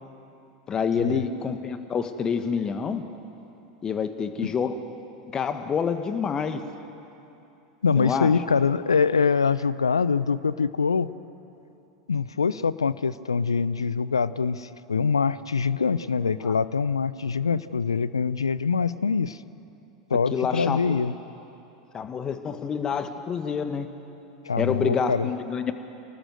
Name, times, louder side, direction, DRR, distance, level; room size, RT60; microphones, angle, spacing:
voice 1, 0.7-3.0 3.8-4.8 5.3-6.6 8.0-8.3 16.2-16.6 20.3-20.9 21.9-23.9 24.6-25.7, left 6 dB, 25° left, 9 dB, 1.7 m, -27 dB
voice 2, 7.8-11.1 12.1-19.4 20.1-21.1 24.5-25.3, left 5 dB, 80° left, 17 dB, 0.6 m, -24 dB
29.5 x 19.0 x 7.9 m, 2.9 s
figure-of-eight pair, 85°, 3 cm